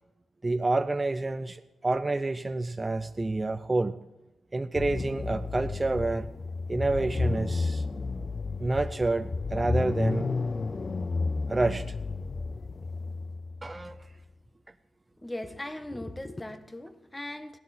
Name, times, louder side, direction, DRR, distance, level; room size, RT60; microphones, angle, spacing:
voice 1, 0.4-4.0 4.5-6.3 6.7-7.8 8.6-10.3 11.5-11.9 13.6-14.0, right 2 dB, 30° right, 9 dB, 0.5 m, -28 dB
sound 1, 4.7-14.1, left 3 dB, 45° left, 0.5 m, -32 dB
voice 2, 15.2-17.6, left 1 dB, 20° left, 9 dB, 1.3 m, -38 dB
16.5 x 11.5 x 4.2 m, 1.0 s
cardioid pair, 60°, 0 cm